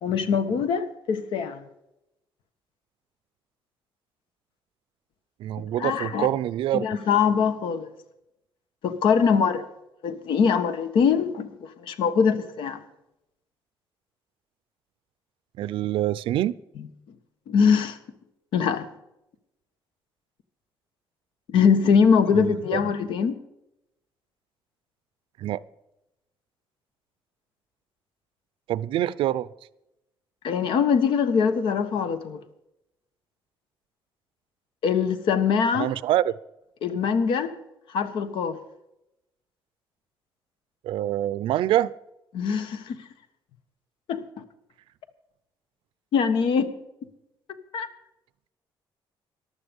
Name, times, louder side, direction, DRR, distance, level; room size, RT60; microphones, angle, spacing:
voice 1, 0.0-1.6 5.8-6.3 6.7-7.9 8.8-9.7 10.0-12.8 17.5-18.0 18.5-18.9 21.5-23.4 30.4-32.4 34.8-35.9 36.8-37.5 37.9-38.6 42.3-43.0 44.1-44.2 46.1-46.7 47.7-47.9, left 6 dB, 75° left, 1.4 m, -22 dB
voice 2, 5.4-6.8 15.6-16.5 22.3-22.8 25.4-25.6 28.7-29.5 35.7-36.3 40.8-41.9, right 13 dB, 85° right, 0.6 m, -25 dB
14.5 x 12.0 x 5.3 m
cardioid pair, 155°, 9 cm